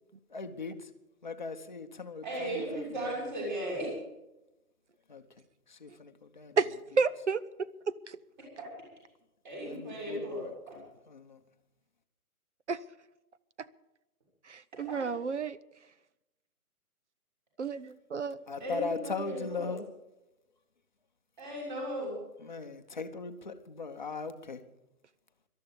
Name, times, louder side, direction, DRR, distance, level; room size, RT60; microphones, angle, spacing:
voice 1, 0.3-0.9 1.2-3.1 5.1-5.2 5.7-6.6 9.7-11.4 18.5-19.8 22.4-24.6, left 4 dB, 30° left, 7 dB, 0.8 m, -39 dB
voice 2, 2.2-3.9 9.4-10.4 14.9-15.0 18.6-19.7 21.4-22.1, right 1 dB, 30° right, -3 dB, 6.5 m, -36 dB
voice 3, 7.0-7.7 8.1-8.2 12.7-12.8 13.6-13.7 14.4-15.6 17.6-18.4, right 5 dB, 50° right, 16 dB, 0.6 m, -31 dB
18.5 x 12.5 x 5.2 m, 0.94 s
hypercardioid pair, 180°, 46 cm